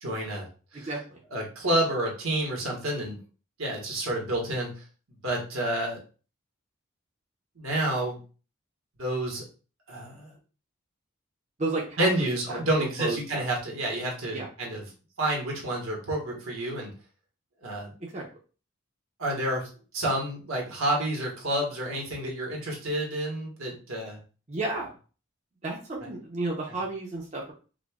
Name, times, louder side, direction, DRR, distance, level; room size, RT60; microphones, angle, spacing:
voice 1, 0.0-0.9 1.3-3.2 3.6-4.7 5.2-6.0 7.6-8.2 9.0-9.4 9.9-10.3 12.0-14.8 15.2-16.9 17.6-17.9 19.2-24.2 26.0-26.1 26.7-26.8, right 1 dB, 80° right, -1 dB, 1.3 m, -29 dB
voice 2, 0.7-1.2 11.6-13.4 14.3-14.5 18.0-18.2 24.5-24.9 25.6-27.5, right 2 dB, 35° right, -2 dB, 0.7 m, -32 dB
5.0 x 2.2 x 2.3 m, 0.36 s
head